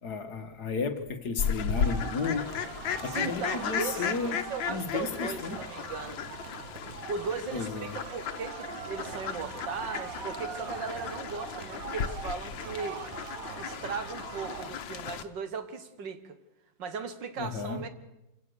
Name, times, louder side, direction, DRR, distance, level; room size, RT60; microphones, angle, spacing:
voice 1, 0.0-2.6 3.0-5.6 7.5-8.0 17.4-17.8, left 4 dB, 60° left, 2.0 m, -33 dB
Fowl, 1.4-15.2, left 7 dB, 90° left, 1.8 m, -35 dB
sound 1, 1.7-14.7, right 8 dB, 55° right, 1.2 m, -43 dB
voice 2, 3.0-4.2 4.5-6.2 7.1-13.0 13.6-16.4 16.8-17.9, right 5 dB, 70° right, 2.1 m, -37 dB
26.5 x 17.0 x 6.7 m
omnidirectional pair, 2.0 m